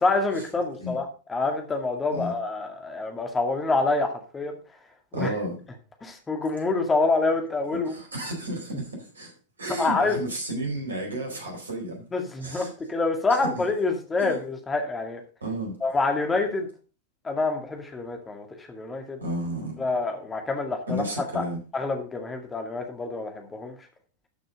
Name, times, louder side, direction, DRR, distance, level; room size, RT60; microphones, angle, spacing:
voice 1, 0.0-4.5 5.1-5.3 6.0-8.0 9.8-10.2 12.1-15.2 15.8-16.7 17.2-19.2 19.8-21.0 21.3-21.4 21.7-23.7, left 3 dB, 15° left, 2.1 m, -27 dB
voice 2, 5.1-5.6 7.9-9.3 9.6-12.1 12.4-12.7 13.4-13.6 14.2-14.4 15.4-15.8 19.2-19.8 20.9-21.6, right 1 dB, 75° right, 4.3 m, -32 dB
13.0 x 6.5 x 5.1 m
figure-of-eight pair, 90°, 0 cm